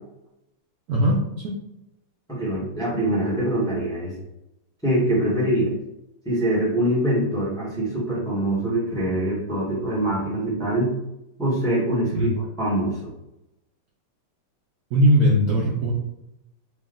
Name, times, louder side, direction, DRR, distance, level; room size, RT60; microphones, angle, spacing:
voice 1, 0.9-1.5 12.1-12.3 14.9-15.9, equal, 85° right, -3 dB, 0.8 m, -19 dB
voice 2, 2.3-4.1 4.8-5.7 6.2-10.9 11.4-13.0, right 1 dB, 5° left, -5 dB, 0.8 m, -24 dB
3.4 x 3.0 x 3.7 m, 0.88 s
omnidirectional pair, 2.4 m